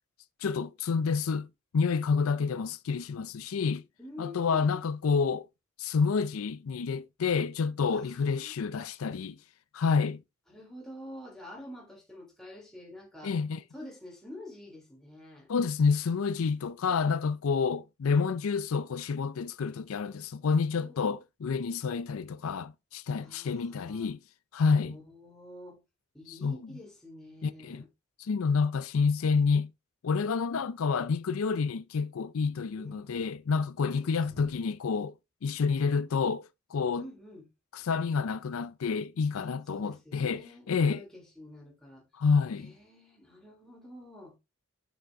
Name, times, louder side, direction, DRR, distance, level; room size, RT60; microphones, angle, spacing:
voice 1, 0.4-1.5 1.7-3.8 4.2-5.5 5.8-9.4 9.7-10.2 13.2-13.6 15.5-24.2 24.5-25.0 26.3-26.6 27.4-27.8 28.2-29.7 30.0-35.1 35.4-37.0 37.7-41.0 42.2-42.7, left 5 dB, 85° left, 0.5 m, -29 dB
voice 2, 4.0-4.8 7.9-8.5 9.8-9.9 10.5-13.4 13.7-15.5 20.7-21.2 23.2-24.1 24.7-25.8 26.1-27.9 32.7-33.3 34.0-34.6 36.9-37.5 37.8-37.9 39.3-42.1 42.5-44.4, left 1 dB, ahead, 3.5 m, -48 dB
6.7 x 6.3 x 3.4 m
head